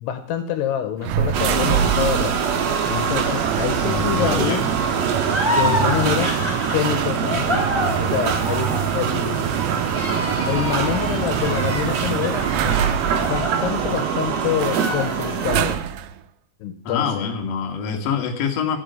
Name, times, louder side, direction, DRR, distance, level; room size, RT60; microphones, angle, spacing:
voice 1, 0.0-4.7 5.5-6.4 6.7-9.5 10.4-12.8 13.2-15.8 16.6-17.3, left 10 dB, 75° left, 9 dB, 2.9 m, -26 dB
sound 1, 1.0-16.2, right 10 dB, 85° right, 2.1 m, -26 dB
sound 2, 1.3-15.8, right 6 dB, 65° right, 1.6 m, -25 dB
voice 2, 3.8-4.7 16.8-18.8, left 6 dB, 50° left, 2 dB, 2.2 m, -25 dB
sound 3, 5.2-14.3 14.7-15.7, left 1 dB, 5° right, 3.1 m, -28 dB
13.5 x 6.3 x 9.3 m, 0.63 s
omnidirectional pair, 5.1 m